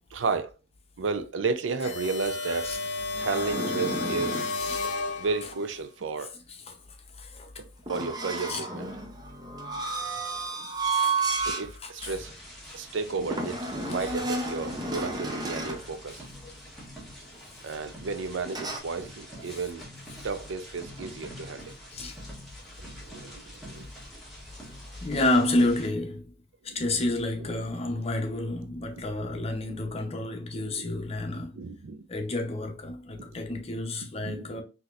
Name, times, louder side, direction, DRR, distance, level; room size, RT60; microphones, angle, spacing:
voice 1, 0.1-0.5 1.0-2.7 3.1-4.5 5.2-6.3 7.9-8.9 10.5-10.6 11.4-12.3 12.7-13.6 13.9-16.3 17.6-19.9 20.2-21.7 22.8-23.9 26.7-26.8 29.7-29.8 30.5-31.0 31.5-32.0 34.2-34.6, right 4 dB, 90° right, 0.5 m, -33 dB
sound 1, 1.8-5.7, left 3 dB, 70° left, 0.7 m, -32 dB
sound 2, 2.3-4.6 7.9-11.7 12.1-12.3 13.3-15.9 18.5-18.8, right 3 dB, 20° right, 0.5 m, -32 dB
voice 2, 6.2-6.8 7.2-7.5 8.5-8.7 10.8-11.3 11.8-12.1 14.0-14.1 16.4-16.5 21.9-22.2 25.0-26.3 26.6-31.5 32.1-34.6, left 2 dB, 35° left, 0.7 m, -30 dB
sound 3, 12.0-25.9, equal, ahead, 1.5 m, -46 dB
4.0 x 2.8 x 2.4 m
head